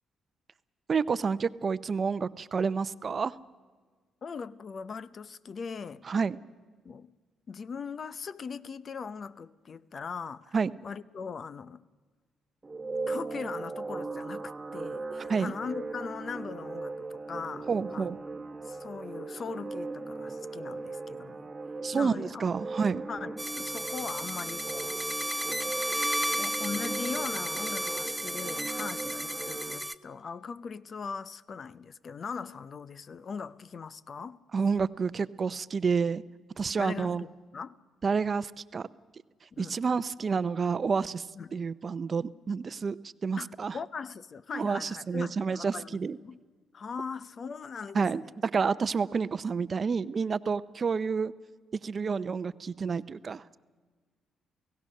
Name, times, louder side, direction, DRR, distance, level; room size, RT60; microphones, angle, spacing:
voice 1, 0.9-3.3 6.1-6.4 10.5-10.7 15.3-15.5 17.7-18.2 21.8-23.0 34.5-36.2 36.6-37.2 38.0-38.9 39.6-41.2 41.5-43.8 44.5-46.2 47.9-51.3 51.8-53.6, right 5 dB, 40° right, 0.6 m, -29 dB
voice 2, 4.2-6.0 6.8-7.1 7.5-10.5 10.8-11.8 13.1-18.2 18.6-21.5 21.9-22.4 23.1-25.7 26.4-34.4 36.8-37.8 39.5-39.8 41.3-41.6 43.4-46.4 46.7-48.3, left 5 dB, 45° left, 0.6 m, -40 dB
sound 1, 12.6-29.8, right 3 dB, 20° right, 1.2 m, -38 dB
sound 2, 23.4-29.9, equal, ahead, 0.7 m, -33 dB
29.0 x 16.5 x 6.5 m
cardioid pair, 90°, 0 cm